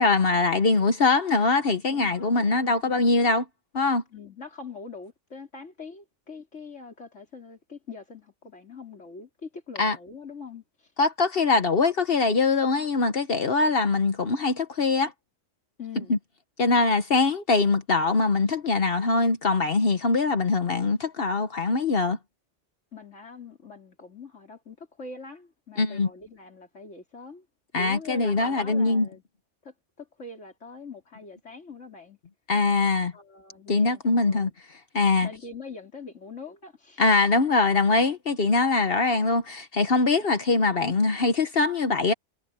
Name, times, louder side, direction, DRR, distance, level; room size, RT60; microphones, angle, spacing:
voice 1, 0.0-3.4 3.7-4.0 9.8-10.0 11.0-15.1 16.1-16.2 16.6-22.2 25.8-26.1 27.7-29.1 32.5-33.1 33.7-34.5 34.9-35.3 37.0-42.1, left 3 dB, 55° left, 1.2 m, -22 dB
voice 2, 1.9-2.8 4.1-10.9 15.8-16.2 22.9-27.5 27.8-29.2 29.6-32.2 33.1-34.5 35.2-37.0, left 4 dB, 80° left, 4.0 m, -43 dB
omnidirectional pair, 1.2 m